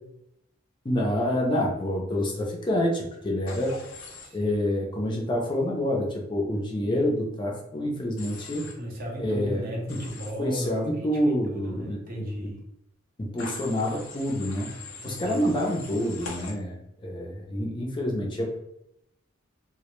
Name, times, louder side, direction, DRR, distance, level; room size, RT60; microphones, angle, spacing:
voice 1, 0.8-3.8 4.3-8.6 9.2-9.6 9.9-10.0 10.4-12.2 13.2-14.7 15.0-16.8 17.0-18.6, left 1 dB, 25° left, -1 dB, 0.4 m, -27 dB
Human voice / Train, 3.5-4.3 8.2-8.7 9.9-10.3 13.4-16.5, left 3 dB, 75° left, 0.5 m, -42 dB
voice 2, 4.2-4.5 6.8-7.3 8.6-12.6 15.0-15.5, equal, 45° right, -1 dB, 0.6 m, -37 dB
2.1 x 2.0 x 2.9 m, 0.78 s
head